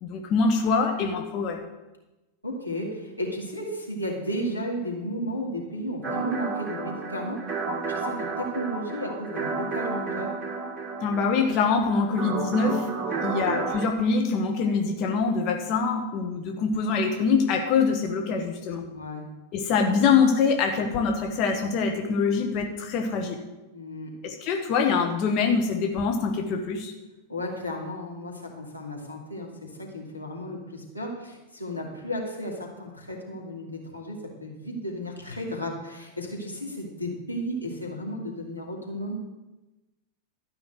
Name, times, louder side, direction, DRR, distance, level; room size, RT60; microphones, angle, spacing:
voice 1, 0.0-1.6 11.0-12.9 13.2-18.8 19.5-23.4 24.2-26.9, left 5 dB, 40° left, 3 dB, 1.3 m, -24 dB
voice 2, 2.4-10.4 13.0-13.5 18.8-19.2 23.7-24.1 27.3-39.2, equal, 85° left, -2 dB, 2.5 m, -34 dB
sound 1, 6.0-13.9, right 4 dB, 20° right, 2.1 m, -31 dB
13.0 x 5.7 x 7.9 m, 1.1 s
figure-of-eight pair, 90°, 0 cm